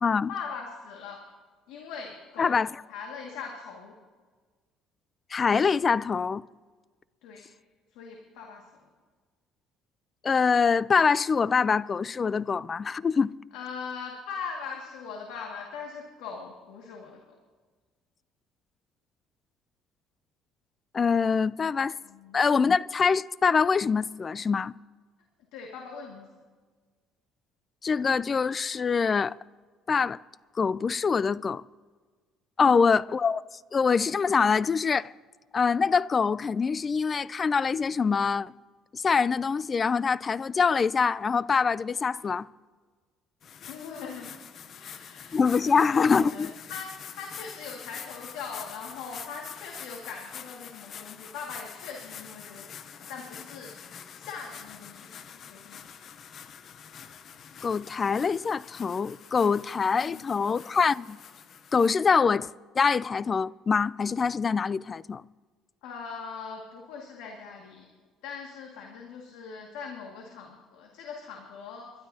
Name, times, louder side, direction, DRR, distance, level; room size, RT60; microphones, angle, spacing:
voice 1, 0.3-1.2 1.7-2.6 2.9-4.0 7.2-7.5 7.9-8.7 13.5-17.4 22.0-22.4 25.5-26.3 32.6-32.8 43.6-44.3 44.7-45.4 45.7-55.8 60.1-60.2 65.8-67.9 68.2-71.9, left 5 dB, 85° left, 2.0 m, -41 dB
voice 2, 2.4-2.7 5.3-6.4 10.2-13.3 20.9-21.9 22.3-24.7 27.8-29.3 29.9-30.2 30.6-31.6 32.6-33.4 33.7-35.1 35.5-38.5 38.9-42.5 45.3-46.5 57.6-61.2 61.7-65.2, left 5 dB, 30° left, 0.3 m, -24 dB
sound 1, 43.4-61.9, left 8 dB, 50° left, 0.8 m, -45 dB
30.0 x 12.5 x 2.8 m
cardioid pair, 100°, 0 cm